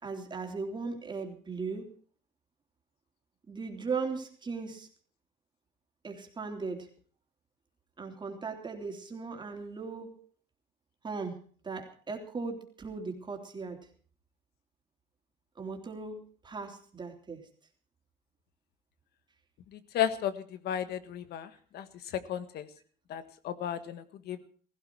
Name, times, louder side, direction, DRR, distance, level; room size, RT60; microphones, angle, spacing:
voice 1, 0.0-1.9 3.5-4.9 6.0-6.9 8.0-10.2 11.0-11.4 11.6-13.8 15.6-17.5, right 4 dB, 25° right, 2 dB, 3.5 m, -38 dB
voice 2, 19.9-20.3 20.6-21.5 21.7-21.8 22.1-22.7 23.1-24.5, left 10 dB, 70° left, 12 dB, 1.5 m, -33 dB
17.0 x 15.5 x 4.7 m, 0.43 s
cardioid pair, 110°, 17 cm